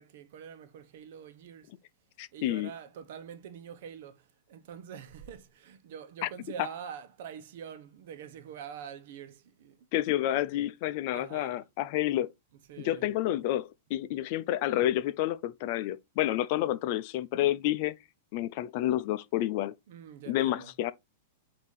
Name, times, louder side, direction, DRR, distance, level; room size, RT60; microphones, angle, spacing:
voice 1, 0.0-1.7 2.3-9.9 11.1-11.6 12.7-13.1 19.9-20.7, right 8 dB, 60° right, 1.0 m, -45 dB
voice 2, 2.2-2.7 6.2-6.3 9.9-12.3 12.8-18.0 18.3-19.7 20.3-20.9, left 13 dB, 45° left, 0.6 m, -29 dB
8.4 x 2.8 x 4.2 m
supercardioid pair, 150°, 0 cm